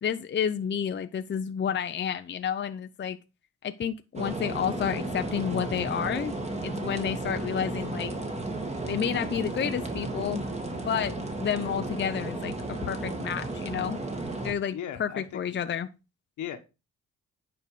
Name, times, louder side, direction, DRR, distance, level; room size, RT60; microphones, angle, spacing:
voice 1, 0.0-3.2 3.6-6.3 6.6-8.1 8.9-10.4 10.9-12.6 12.8-14.0 14.4-15.9, left 8 dB, 35° left, 8 dB, 0.7 m, -30 dB
sound 1, 4.2-14.5, right 2 dB, 20° right, 2.0 m, -34 dB
voice 2, 14.7-15.6 16.4-16.6, left 9 dB, 75° left, 8 dB, 1.5 m, -37 dB
9.2 x 4.9 x 4.9 m, 0.27 s
cardioid pair, 90°, 30 cm